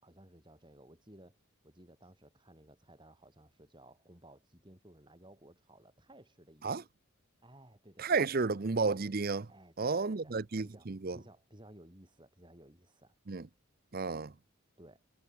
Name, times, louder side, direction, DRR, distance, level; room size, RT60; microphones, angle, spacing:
voice 1, 0.0-6.9 7.4-8.5 9.5-10.3 10.6-10.9 11.1-13.2 14.8-15.0, right 1 dB, 20° right, 4.2 m, -57 dB
voice 2, 8.0-9.5 9.8-11.2 13.3-13.5 13.9-14.3, right 4 dB, 40° right, 0.6 m, -32 dB
head